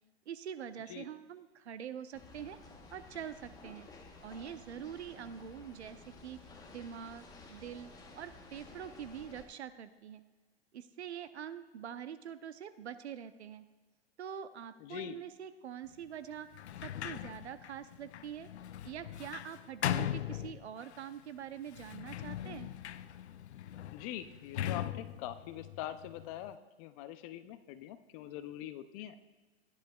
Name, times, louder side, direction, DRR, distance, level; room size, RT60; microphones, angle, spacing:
voice 1, 0.3-2.6 2.9-3.9 4.2-6.0 6.2-6.4 6.7-10.2 10.7-13.6 14.2-16.5 16.8-18.5 18.8-22.7, right 9 dB, 85° right, 12 dB, 0.8 m, -45 dB
sound 1, 2.1-9.5, left 3 dB, 10° left, 1.1 m, -54 dB
voice 2, 14.8-15.2 23.9-29.1, left 12 dB, 35° left, 12 dB, 0.6 m, -43 dB
Sliding door, 16.5-21.0 21.7-26.5, left 11 dB, 85° left, 0.5 m, -40 dB
15.0 x 10.5 x 2.4 m, 1.3 s
hypercardioid pair, 130°, 32 cm